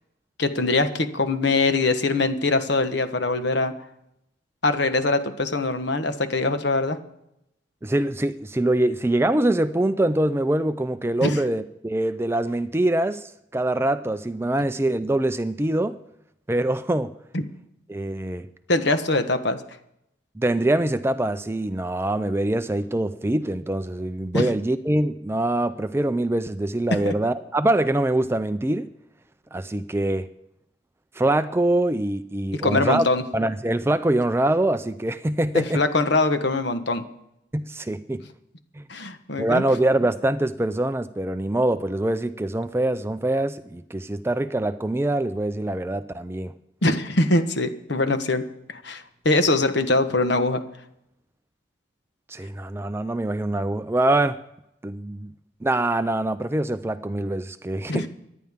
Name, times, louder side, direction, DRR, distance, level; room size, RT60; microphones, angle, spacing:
voice 1, 0.4-3.7 4.6-7.0 11.2-11.4 17.3-17.4 18.7-19.6 24.3-24.5 27.0-27.1 32.6-33.2 35.5-37.0 38.9-39.6 46.8-50.6 57.9-58.1, left 2 dB, 60° left, 8 dB, 1.2 m, -23 dB
voice 2, 7.8-16.0 16.5-17.1 17.9-18.5 20.4-28.9 29.5-30.3 31.1-33.1 33.3-35.8 37.5-38.2 38.7-38.8 39.4-46.5 52.3-54.4 54.8-55.3 55.6-58.1, right 1 dB, 15° right, 11 dB, 0.4 m, -24 dB
24.5 x 10.5 x 3.6 m, 0.81 s
head